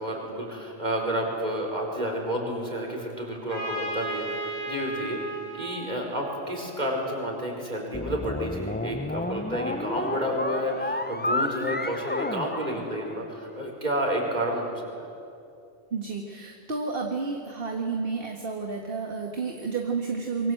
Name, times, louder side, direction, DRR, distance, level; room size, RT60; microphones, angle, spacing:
voice 1, 0.0-15.1, equal, 40° right, 0 dB, 4.9 m, -30 dB
Trumpet, 3.5-7.2, right 2 dB, 85° left, 6.7 m, -35 dB
sound 1, 7.9-13.4, left 2 dB, 15° left, 0.5 m, -31 dB
voice 2, 15.9-20.5, right 4 dB, 60° right, 2 dB, 1.9 m, -31 dB
26.0 x 23.5 x 7.8 m, 2.6 s
omnidirectional pair, 1.1 m